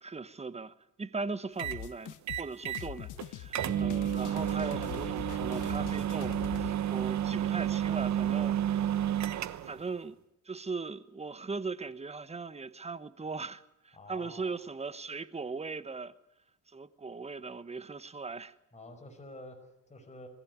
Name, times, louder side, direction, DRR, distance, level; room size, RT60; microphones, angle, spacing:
voice 1, 0.0-8.9 9.7-10.2 10.4-16.1 16.7-18.5, right 4 dB, 20° right, 14 dB, 1.1 m, -39 dB
sound 1, 1.6-6.7, left 12 dB, 85° left, 0.9 m, -42 dB
sound 2, 1.6-1.8 2.3-2.9 3.2-3.3 3.5-9.8, right 11 dB, 65° right, 1.1 m, -31 dB
voice 2, 14.0-14.5 18.7-20.3, left 2 dB, 25° left, 4 dB, 5.4 m, -48 dB
21.5 x 15.5 x 9.6 m, 0.85 s
cardioid pair, 90°, 30 cm